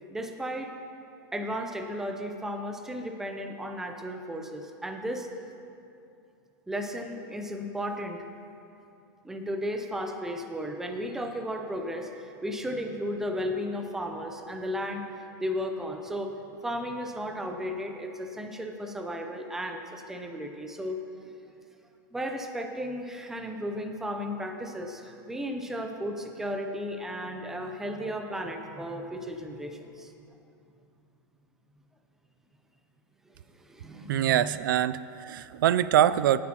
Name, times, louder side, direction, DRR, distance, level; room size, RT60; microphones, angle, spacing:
voice 1, 0.1-0.7 1.3-5.3 6.7-8.2 9.2-21.0 22.1-30.1 33.3-34.6, equal, 5° right, 4 dB, 0.6 m, -34 dB
voice 2, 34.1-36.4, right 11 dB, 85° right, 16 dB, 0.4 m, -24 dB
18.0 x 8.3 x 2.9 m, 2.6 s
supercardioid pair, 150°, 11 cm